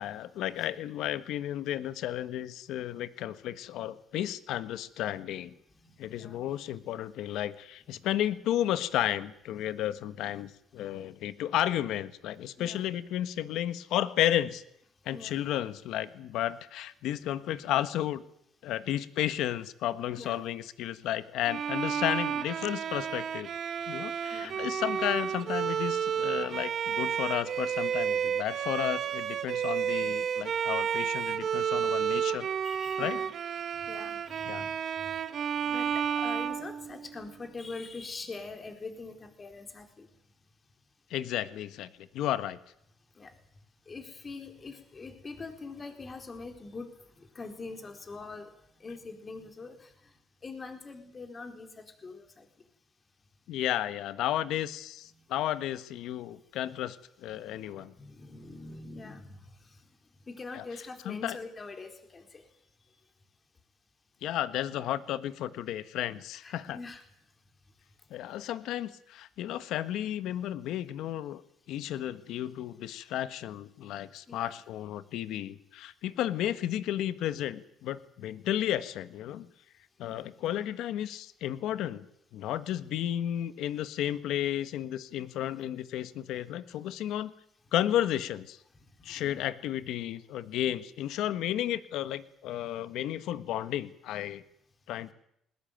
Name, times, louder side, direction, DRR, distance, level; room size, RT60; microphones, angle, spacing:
voice 1, 0.0-5.5 6.0-14.6 15.0-18.2 18.6-23.5 23.9-32.5 33.0-33.2 34.5-34.7 41.1-42.6 53.5-57.9 60.5-60.6 61.0-61.4 64.2-66.8 68.1-71.4 71.7-79.5 80.0-82.0 82.3-87.3 87.7-88.6 89.0-94.4 94.9-95.1, left 12 dB, 75° left, 13 dB, 1.3 m, -33 dB
voice 2, 5.8-6.4 10.2-10.3 12.6-12.8 15.1-15.4 20.2-20.4 24.3-24.6 32.6-33.3 33.8-34.7 35.6-40.1 43.2-43.3 43.9-46.9 47.2-48.5 48.8-49.9 50.4-52.5 55.3-55.4 57.3-59.5 60.3-62.4 66.4-67.0 74.3-74.5 80.0-80.2 89.0-89.4, left 3 dB, 30° left, 6 dB, 4.3 m, -44 dB
Bowed string instrument, 21.5-37.3, right 8 dB, 50° right, 1.8 m, -31 dB
20.0 x 20.0 x 9.3 m, 0.74 s
cardioid pair, 110°, 0 cm